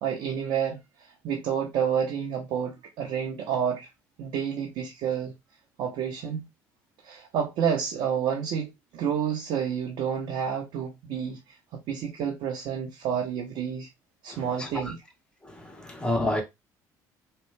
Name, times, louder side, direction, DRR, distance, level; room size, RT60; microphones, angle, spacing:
voice 1, 0.0-0.8 1.2-3.9 4.2-5.3 5.8-6.5 7.0-11.4 11.9-13.9 14.2-15.0, right 8 dB, 70° right, 0.9 m, -29 dB
voice 2, 14.3-14.7 15.4-16.4, left 1 dB, 10° left, 1.2 m, -29 dB
3.3 x 2.3 x 3.2 m
supercardioid pair, 70°, 9 cm